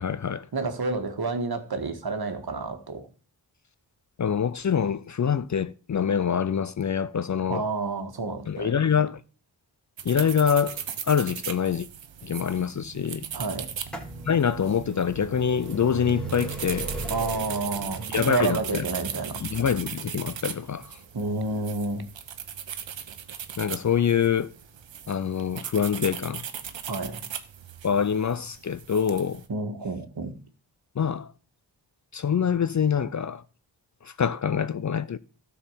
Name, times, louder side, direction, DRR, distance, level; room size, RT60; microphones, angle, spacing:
voice 1, 0.0-0.5 4.2-7.6 8.5-9.2 10.0-10.8 11.1-11.9 12.2-13.3 14.2-16.9 18.1-18.8 19.4-20.9 23.6-24.5 25.1-26.4 27.8-29.4 31.0-31.3 32.1-33.4 34.0-35.2, left 7 dB, 40° left, 0.5 m, -25 dB
voice 2, 0.5-3.1 7.5-8.7 13.3-13.7 17.1-19.4 21.1-22.1 26.9-27.2 29.5-30.3, right 3 dB, 55° right, 1.7 m, -29 dB
sound 1, 10.0-29.5, right 8 dB, 75° right, 1.0 m, -38 dB
sound 2, 13.6-25.2 26.1-26.2 27.1-27.2 27.4-27.5, equal, ahead, 2.7 m, -42 dB
12.5 x 4.7 x 7.2 m
cardioid pair, 50°, 45 cm